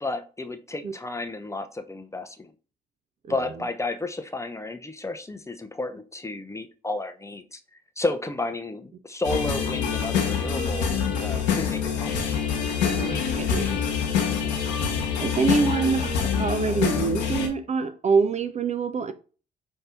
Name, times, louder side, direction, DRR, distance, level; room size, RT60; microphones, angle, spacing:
voice 1, 0.0-2.5 3.3-7.6 8.0-12.2, left 2 dB, 15° left, 0.6 m, -32 dB
sound 1, 9.2-17.5, left 7 dB, 85° left, 1.0 m, -26 dB
voice 2, 12.9-14.0 15.2-19.1, right 5 dB, 35° right, 0.5 m, -26 dB
5.6 x 2.7 x 3.4 m
hypercardioid pair, 50°, 21 cm